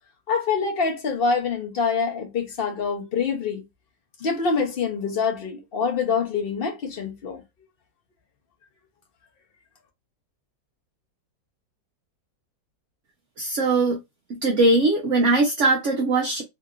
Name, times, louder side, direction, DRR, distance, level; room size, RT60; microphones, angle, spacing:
voice 1, 0.3-3.6 4.2-7.4, left 5 dB, 60° left, 0.6 m, -25 dB
voice 2, 13.4-14.0 14.3-16.4, right 2 dB, 60° right, 0.8 m, -20 dB
3.0 x 2.8 x 2.3 m
omnidirectional pair, 1.9 m